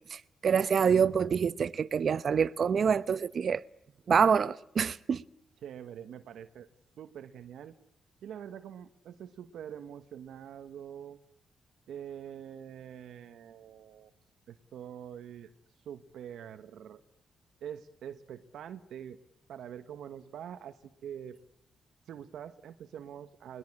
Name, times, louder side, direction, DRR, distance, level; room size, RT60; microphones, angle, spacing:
voice 1, 0.1-3.6 4.1-5.2, right 6 dB, 55° right, 0.9 m, -26 dB
voice 2, 5.6-6.7 7.0-7.7 8.2-11.2 11.9-14.1 14.5-15.5 15.8-17.0 17.6-19.2 19.5-21.4 22.1-23.6, right 9 dB, 75° right, 1.3 m, -45 dB
22.0 x 21.0 x 10.0 m
supercardioid pair, 65°, 0 cm